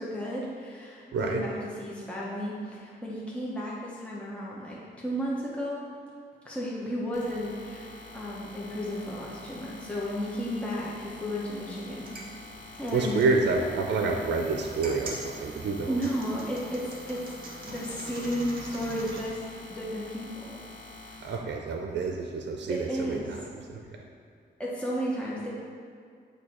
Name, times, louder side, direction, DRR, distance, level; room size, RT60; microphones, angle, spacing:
voice 1, 0.0-5.9 6.4-12.2 12.8-13.2 15.5-17.3 17.6-20.6 21.0-21.3 22.7-23.4 24.6-25.5, equal, 5° left, -6 dB, 0.9 m, -33 dB
voice 2, 1.1-1.4 12.9-16.1 21.2-23.4 23.7-23.8, right 4 dB, 70° right, 2 dB, 0.5 m, -28 dB
sound 1, 7.1-21.3, left 2 dB, 40° left, 1.0 m, -47 dB
sound 2, 11.9-19.3, right 2 dB, 55° right, 1.0 m, -44 dB
8.1 x 2.8 x 4.3 m, 2.3 s
cardioid pair, 100°, 18 cm